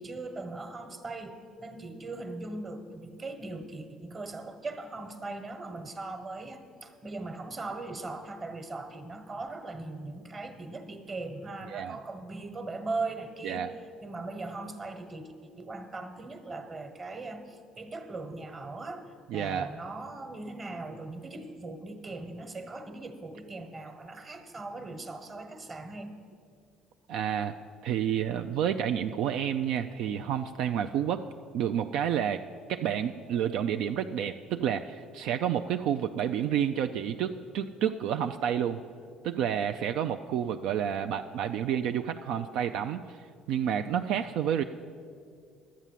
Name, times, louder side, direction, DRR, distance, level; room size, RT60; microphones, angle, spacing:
voice 1, 0.0-13.6 14.0-26.1, right 3 dB, 30° right, 7 dB, 1.2 m, -39 dB
voice 2, 19.3-19.7 27.1-27.6 27.8-31.2 31.5-32.4 32.7-38.8 39.2-43.2 43.5-44.6, right 9 dB, 70° right, 7 dB, 0.4 m, -29 dB
11.5 x 8.3 x 7.4 m, 2.3 s
cardioid pair, 115°, 0 cm